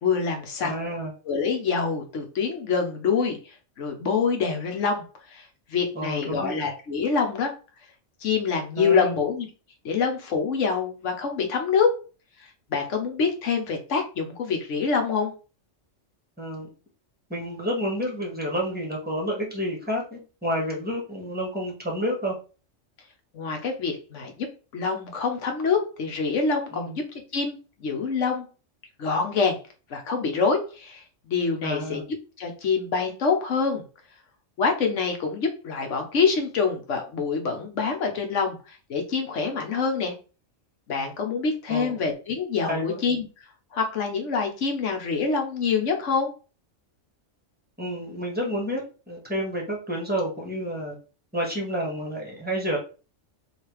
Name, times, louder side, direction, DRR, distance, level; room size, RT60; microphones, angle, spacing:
voice 1, 0.0-0.7 1.2-5.0 5.3-5.4 5.7-7.5 8.2-9.5 9.8-12.0 12.7-15.3 23.3-24.5 24.7-27.0 27.3-28.5 29.0-29.6 29.9-32.0 32.4-33.8 34.6-40.1 40.9-43.3 43.7-46.3, left 5 dB, 70° left, 4 dB, 1.2 m, -26 dB
voice 2, 0.6-1.1 5.9-6.7 8.8-9.2 16.4-16.7 17.3-22.3 26.7-26.9 31.6-32.0 41.7-41.9 42.7-43.0 47.8-51.0 51.3-52.8, equal, 10° right, -1 dB, 1.3 m, -29 dB
3.3 x 2.8 x 4.5 m, 0.35 s
omnidirectional pair, 1.3 m